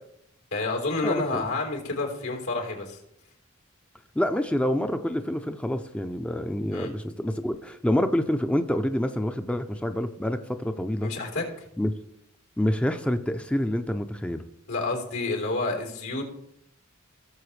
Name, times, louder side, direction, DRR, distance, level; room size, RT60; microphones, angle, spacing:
voice 1, 0.5-3.0 6.7-6.9 11.0-11.5 14.7-16.2, left 3 dB, 85° left, 1 dB, 3.5 m, -29 dB
voice 2, 1.0-1.5 4.2-11.1 11.8-11.9 12.6-14.4, left 1 dB, 5° left, 8 dB, 0.4 m, -27 dB
17.5 x 6.9 x 3.2 m, 0.76 s
head